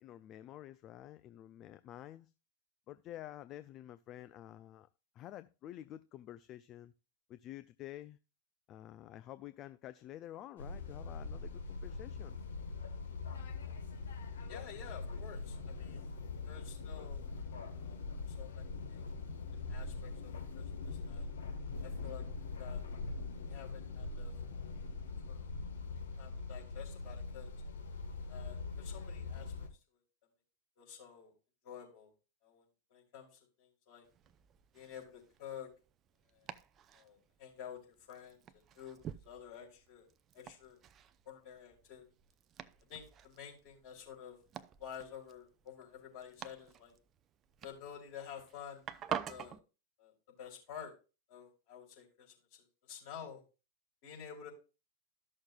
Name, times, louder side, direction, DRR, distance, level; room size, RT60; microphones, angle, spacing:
voice 1, 0.0-2.3 2.9-4.9 5.1-6.9 7.3-8.2 8.7-12.4, left 13 dB, 35° left, 0.4 m, -50 dB
sound 1, 10.6-29.7, left 4 dB, 70° left, 1.3 m, -42 dB
voice 2, 14.5-16.0 16.4-17.3 17.8-18.0 18.3-19.0 19.5-21.3 21.8-22.9 23.5-24.8 25.2-25.5 26.2-27.5 28.3-30.0 30.8-31.3 31.6-32.1 32.4-32.6 32.9-34.1 34.7-35.7 36.3-36.5 36.9-40.1 40.3-40.8 41.3-42.0 42.9-44.4 44.8-46.9 47.6-49.6 50.0-50.9 51.3-53.4 54.0-54.5, left 8 dB, 50° left, 4.0 m, -51 dB
Domestic sounds home sounds, 34.0-49.6, right 9 dB, 30° right, 0.5 m, -49 dB
14.0 x 6.4 x 2.3 m
figure-of-eight pair, 95°, 0 cm